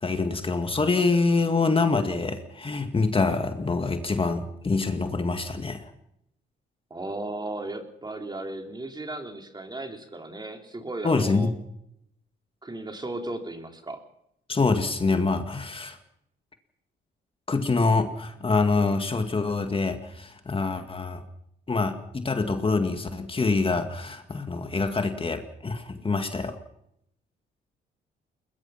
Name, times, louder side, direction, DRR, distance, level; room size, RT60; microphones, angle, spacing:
voice 1, 0.0-5.9 11.0-11.5 14.5-16.0 17.5-21.2 21.7-26.6, left 3 dB, 25° left, 7 dB, 2.1 m, -25 dB
voice 2, 6.9-11.5 12.6-14.0, right 2 dB, 20° right, 5 dB, 3.5 m, -35 dB
21.0 x 21.0 x 5.9 m, 0.76 s
cardioid pair, 90°, 20 cm